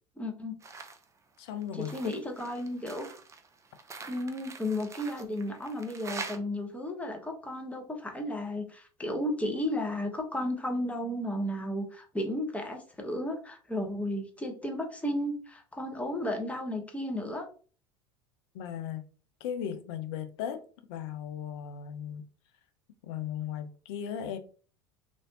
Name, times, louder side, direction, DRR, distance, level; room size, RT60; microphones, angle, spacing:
voice 1, 0.2-0.5 1.7-3.1 4.1-17.5, left 1 dB, 10° left, 0.8 m, -33 dB
sound 1, 0.6-1.0 1.4-6.4, right 4 dB, 20° right, 0.5 m, -44 dB
voice 2, 1.4-2.2 18.5-19.1 19.4-20.6 20.9-22.2 23.0-24.4, left 9 dB, 65° left, 0.6 m, -36 dB
3.1 x 2.6 x 2.7 m
hypercardioid pair, 75°, 15 cm